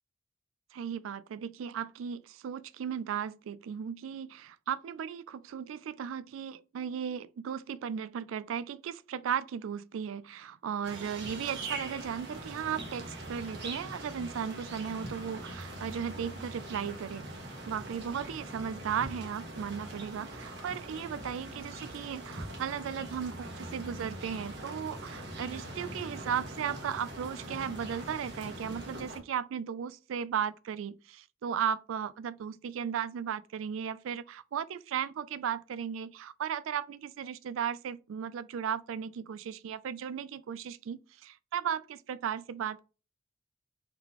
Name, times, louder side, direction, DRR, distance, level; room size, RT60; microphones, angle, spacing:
voice 1, 0.7-42.8, right 8 dB, 80° right, 0.3 m, -36 dB
sound 1, 10.8-29.2, right 1 dB, 60° right, 1.2 m, -42 dB
3.8 x 3.7 x 2.9 m
head